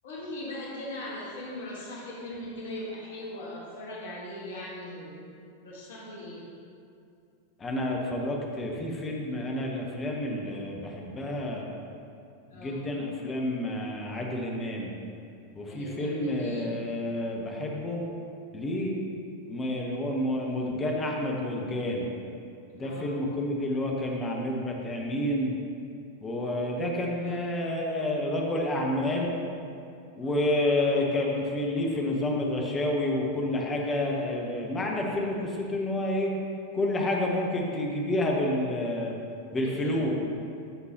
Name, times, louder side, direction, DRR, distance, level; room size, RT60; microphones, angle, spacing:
voice 1, 0.0-5.4 5.6-6.5 12.5-12.8 15.6-16.7 22.8-23.1 27.2-27.5 30.2-30.4 39.6-40.1, left 1 dB, 60° left, -4 dB, 1.5 m, -40 dB
voice 2, 7.6-11.7 12.5-14.9 15.6-18.0 18.5-18.9 19.5-22.1 22.7-25.5 26.2-29.3 30.1-36.3 36.7-39.1 39.5-40.1, left 1 dB, 20° left, -1 dB, 1.1 m, -29 dB
13.5 x 5.9 x 2.9 m, 2.5 s
figure-of-eight pair, 90°, 0 cm